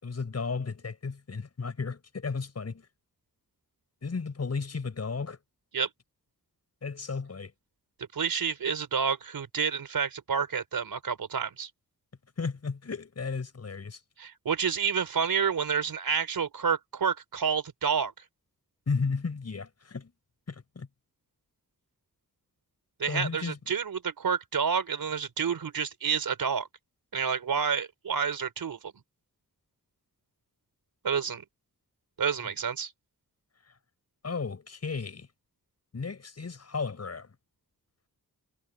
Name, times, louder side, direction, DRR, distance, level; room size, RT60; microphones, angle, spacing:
voice 1, 0.0-2.9 4.0-5.4 6.8-7.5 12.4-14.0 18.9-20.1 20.5-20.9 23.1-23.6 34.2-35.3 35.9-37.3, left 4 dB, 50° left, 6.6 m, -34 dB
voice 2, 8.1-11.7 14.2-18.1 23.0-26.7 27.1-28.9 31.0-31.4 32.2-32.9, right 6 dB, 85° right, 4.6 m, -29 dB
wide cardioid pair, 155°, 34 cm